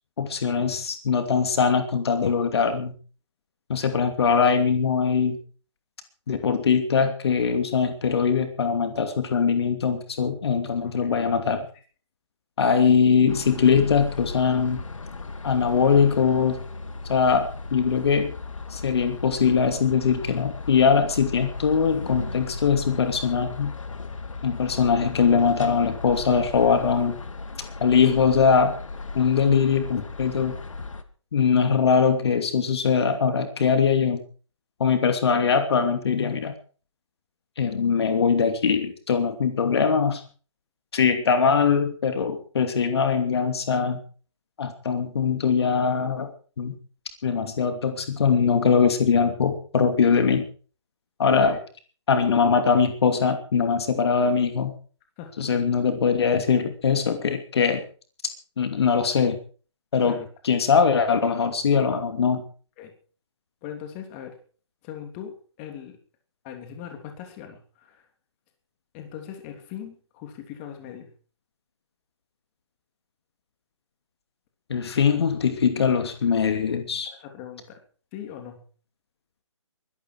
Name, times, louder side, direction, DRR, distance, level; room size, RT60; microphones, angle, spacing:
voice 1, 0.2-2.9 3.7-5.4 6.3-11.7 12.6-14.8 15.4-16.6 17.1-18.3 18.7-23.7 24.4-27.1 27.8-28.7 29.1-30.6 31.3-34.2 34.8-36.6 37.6-40.2 40.9-44.0 44.6-46.3 46.6-46.7 47.2-50.4 51.2-51.6 52.1-54.7 55.4-57.8 58.6-59.4 59.9-60.2 60.4-62.4 74.7-77.1, left 6 dB, 55° left, 7 dB, 2.7 m, -22 dB
sound 1, 13.3-31.0, left 4 dB, 85° left, 2.4 m, -36 dB
voice 2, 51.3-51.6 55.2-55.5 60.0-60.3 62.8-62.9 63.6-64.4 64.8-66.0 66.4-68.0 68.9-71.1 74.9-75.2 77.2-77.8 78.1-78.6, left 9 dB, 20° left, 5 dB, 3.1 m, -40 dB
22.5 x 12.0 x 4.7 m, 0.41 s
hypercardioid pair, 160°, 16 cm